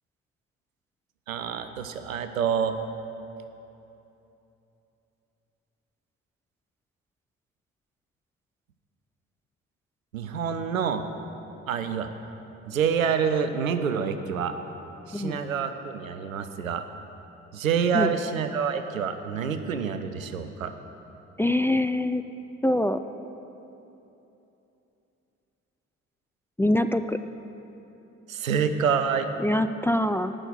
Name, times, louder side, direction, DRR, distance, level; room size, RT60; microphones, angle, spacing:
voice 1, 1.3-2.8 10.1-11.0 11.7-12.1 12.7-14.5 15.1-16.8 17.5-20.7 28.3-29.3, right 7 dB, 90° right, 9 dB, 0.6 m, -27 dB
voice 2, 21.4-22.2 22.6-23.0 26.6-27.2 29.4-30.3, left 1 dB, 5° left, 10 dB, 0.3 m, -24 dB
17.5 x 6.2 x 6.7 m, 3.0 s
figure-of-eight pair, 45°, 40 cm